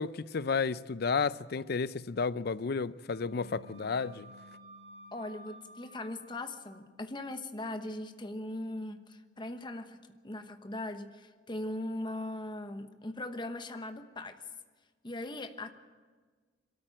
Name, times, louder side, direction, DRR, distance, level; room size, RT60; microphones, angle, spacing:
voice 1, 0.0-4.3, left 5 dB, 60° left, 0.5 m, -32 dB
Wind instrument woodwind instrument, 3.1-6.8, right 1 dB, 90° right, 5.1 m, -54 dB
Bass guitar, 3.2-9.5, left 2 dB, 35° right, 4.8 m, -60 dB
voice 2, 5.1-10.0 10.2-14.4 15.0-15.7, left 1 dB, 25° left, 1.1 m, -39 dB
22.5 x 13.5 x 8.9 m
head